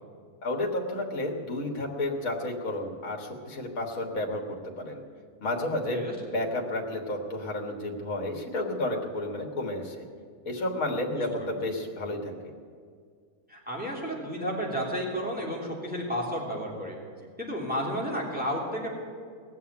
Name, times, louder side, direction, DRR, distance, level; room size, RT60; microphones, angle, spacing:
voice 1, 0.4-5.0 5.4-6.0 6.3-10.1 10.4-12.5, left 1 dB, 65° left, 1 dB, 2.1 m, -31 dB
voice 2, 11.1-11.5 13.5-17.0 17.4-18.9, equal, 5° right, -3 dB, 3.1 m, -32 dB
18.5 x 7.1 x 9.7 m, 2.1 s
omnidirectional pair, 1.6 m